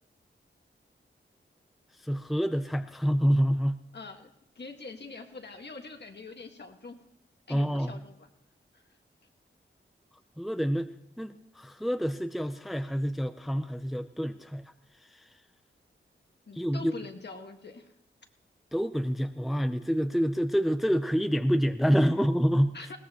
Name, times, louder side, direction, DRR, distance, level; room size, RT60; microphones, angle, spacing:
voice 1, 2.0-3.8 7.5-7.9 10.4-10.9 11.2-14.6 16.6-16.9 18.7-22.7, equal, ahead, 9 dB, 0.6 m, -27 dB
voice 2, 3.9-4.3 4.6-7.0 7.5-8.3 8.7-8.8 16.5-17.9 22.7-23.0, left 4 dB, 55° left, 4 dB, 1.7 m, -44 dB
20.5 x 17.5 x 3.0 m, 0.75 s
wide cardioid pair, 80°, 21 cm